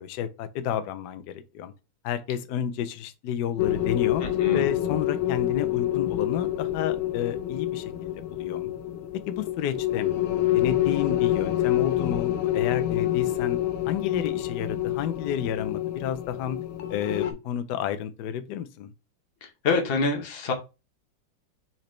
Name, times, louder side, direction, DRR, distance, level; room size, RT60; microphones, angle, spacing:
voice 1, 0.0-1.7 2.0-4.2 4.5-8.7 9.3-10.1 10.5-13.6 13.9-16.6 16.9-18.9, left 9 dB, 70° left, 1.0 m, -31 dB
sound 1, 3.6-17.3, left 13 dB, 90° left, 1.4 m, -27 dB
voice 2, 19.4-20.5, left 3 dB, 45° left, 0.8 m, -26 dB
4.4 x 3.9 x 3.1 m
omnidirectional pair, 2.2 m